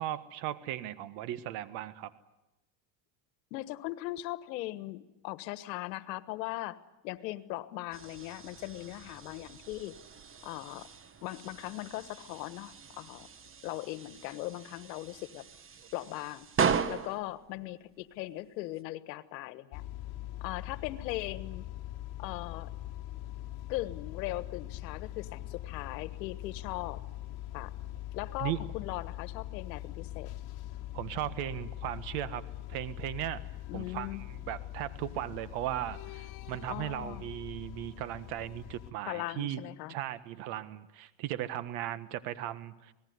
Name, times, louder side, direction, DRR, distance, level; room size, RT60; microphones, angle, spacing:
voice 1, 0.0-2.1 28.4-28.6 30.9-32.4 32.7-33.4 33.7-39.6 39.9-42.9, right 13 dB, 65° right, 13 dB, 1.7 m, -37 dB
voice 2, 3.5-6.8 7.0-9.9 10.4-10.9 11.2-13.3 13.6-15.4 15.9-16.5 16.9-19.8 20.4-21.6 22.2-22.7 23.7-27.0 27.5-27.7 28.1-30.3 33.7-34.2 36.7-37.2 39.0-39.9, left 17 dB, 85° left, 14 dB, 1.5 m, -39 dB
sound 1, 7.9-18.8, right 6 dB, 25° right, 1.3 m, -38 dB
sound 2, 19.7-38.9, left 14 dB, 50° left, 2.0 m, -42 dB
26.5 x 19.0 x 9.6 m, 0.97 s
supercardioid pair, 120°, 49 cm